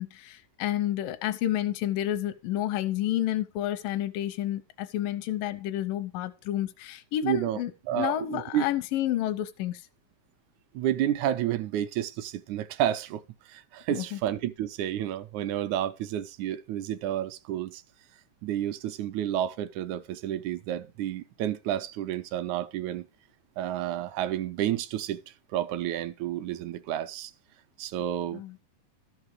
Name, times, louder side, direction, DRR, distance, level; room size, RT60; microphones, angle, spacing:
voice 1, 0.0-9.9 13.9-14.2 28.3-28.6, left 13 dB, 85° left, 2.4 m, -30 dB
voice 2, 7.2-7.6 7.9-8.7 10.7-17.8 18.4-23.1 23.6-27.3 27.8-28.4, right 11 dB, 75° right, 1.8 m, -30 dB
13.0 x 5.8 x 4.6 m
omnidirectional pair, 3.9 m